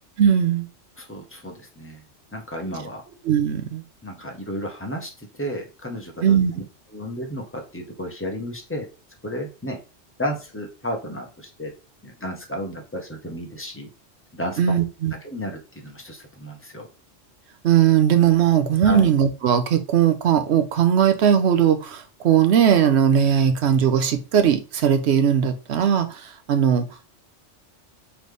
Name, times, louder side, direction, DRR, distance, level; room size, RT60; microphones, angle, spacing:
voice 1, 0.2-0.7 3.2-3.8 6.2-6.5 14.6-15.1 17.6-26.9, right 8 dB, 65° right, 0.9 m, -19 dB
voice 2, 1.0-2.0 2.3-3.0 4.0-6.6 6.9-8.9 9.2-9.8 10.2-11.7 12.0-13.9 14.3-14.6 15.2-16.9 18.8-19.1, equal, 10° left, 0.8 m, -32 dB
3.8 x 3.4 x 3.3 m
omnidirectional pair, 1.3 m